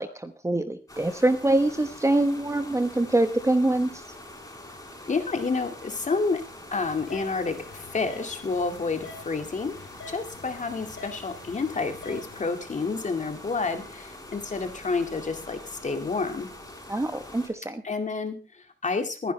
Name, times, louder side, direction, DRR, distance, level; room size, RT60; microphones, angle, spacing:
voice 1, 0.0-3.9 16.9-17.8, right 2 dB, 15° right, 8 dB, 1.2 m, -24 dB
sound 1, 0.9-17.5, left 1 dB, 15° left, 5.7 m, -44 dB
voice 2, 5.1-6.4 6.7-9.8 10.1-16.5 17.8-19.3, left 4 dB, 35° left, 6 dB, 2.2 m, -29 dB
sound 2, 6.8-12.4, left 3 dB, 75° left, 4.0 m, -47 dB
21.0 x 10.5 x 3.3 m, 0.31 s
cardioid pair, 105°, 20 cm